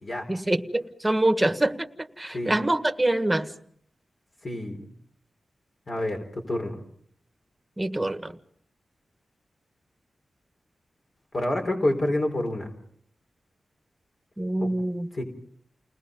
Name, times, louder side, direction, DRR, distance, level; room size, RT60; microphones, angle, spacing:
voice 1, 0.3-3.5 7.8-8.3 14.4-15.1, right 1 dB, 10° right, 7 dB, 1.7 m, -25 dB
voice 2, 4.4-4.9 5.9-6.2 6.5-6.8 11.3-12.7 14.6-14.7 15.1-15.2, left 1 dB, 45° left, 3 dB, 4.5 m, -27 dB
30.0 x 20.0 x 5.4 m, 0.63 s
wide cardioid pair, 105°, 0 cm